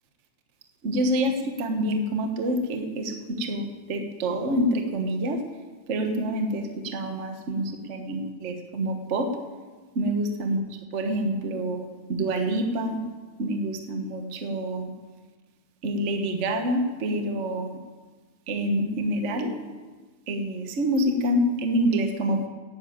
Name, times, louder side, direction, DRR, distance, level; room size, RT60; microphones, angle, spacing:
voice 1, 0.8-5.4 5.9-9.3 9.9-10.6 10.9-13.0 13.4-14.9 15.8-17.8 18.5-19.5 20.3-22.5, right 1 dB, 65° right, 4 dB, 0.7 m, -27 dB
10.5 x 10.0 x 8.7 m, 1.4 s
omnidirectional pair, 3.5 m